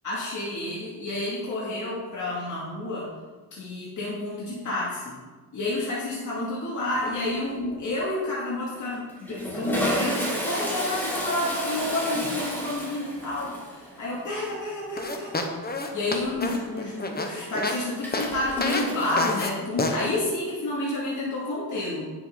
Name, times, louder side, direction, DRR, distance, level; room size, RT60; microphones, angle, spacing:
voice 1, 0.0-3.1 3.5-5.2 5.5-15.4 15.9-22.1, left 2 dB, 55° left, -6 dB, 2.4 m, -30 dB
Toilet flush, 6.9-7.3 7.6-7.7 8.7-19.2, equal, 5° left, 2.9 m, -32 dB
sound 1, 15.0-17.8 18.1-18.3 18.6-18.9 19.2-19.5 19.8-20.0, left 2 dB, 25° left, 1.1 m, -28 dB
9.3 x 7.6 x 3.9 m, 1.3 s
cardioid pair, 95°, 36 cm